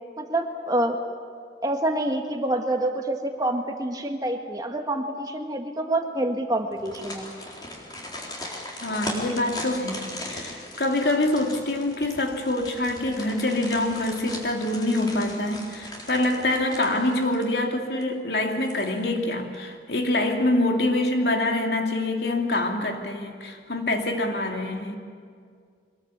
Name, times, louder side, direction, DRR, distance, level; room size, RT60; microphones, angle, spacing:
voice 1, 0.2-1.0 1.6-7.3, right 1 dB, 20° right, 4 dB, 1.8 m, -27 dB
sound 1, 6.7-17.7 18.0-18.1 18.5-19.2 19.5-19.6, left 1 dB, 25° left, 4.0 m, -38 dB
voice 2, 8.8-25.0, left 1 dB, 70° left, 3 dB, 2.6 m, -25 dB
23.5 x 21.5 x 8.3 m, 2.1 s
head